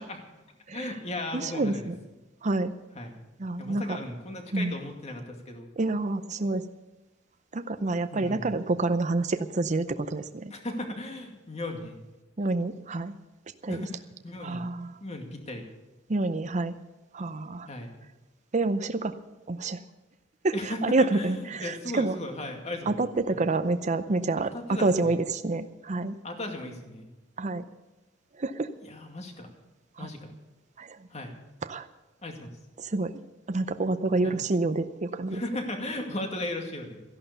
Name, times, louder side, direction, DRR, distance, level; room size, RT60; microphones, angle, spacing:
voice 1, 0.7-1.8 2.9-3.2 3.6-5.7 8.1-8.6 10.5-12.0 13.7-14.6 15.0-15.6 17.7-17.9 20.5-23.0 23.3-23.4 24.5-25.2 26.2-27.1 28.8-29.5 30.0-30.3 31.1-31.3 32.2-32.5 34.2-34.4 35.3-37.0, left 1 dB, 35° left, 3 dB, 2.3 m, -36 dB
voice 2, 1.3-1.9 2.4-2.7 3.4-4.0 4.5-4.7 5.8-6.6 7.5-10.5 12.4-13.1 13.6-13.8 14.4-14.9 16.1-16.7 17.1-17.7 18.5-19.1 19.5-19.8 20.4-22.2 22.9-26.2 27.4-27.7 28.4-28.7 30.0-30.1 30.8-31.0 31.7-31.9 32.8-33.1 33.5-35.4, right 2 dB, 40° right, 10 dB, 0.6 m, -28 dB
14.5 x 11.5 x 6.9 m, 1.1 s
head